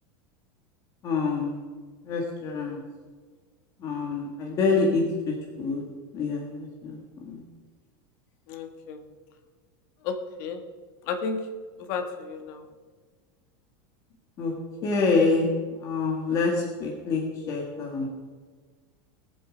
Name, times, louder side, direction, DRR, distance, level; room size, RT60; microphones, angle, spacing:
voice 1, 1.0-1.6 2.0-2.8 3.8-5.8 6.1-7.4 14.4-14.5 14.8-15.5 15.8-18.1, left 4 dB, 30° left, -1 dB, 1.8 m, -26 dB
voice 2, 8.5-9.0 10.0-10.6 11.1-11.4 11.9-12.6, left 5 dB, 50° left, 6 dB, 1.5 m, -32 dB
20.0 x 7.6 x 5.1 m, 1.5 s
supercardioid pair, 165°, 12 cm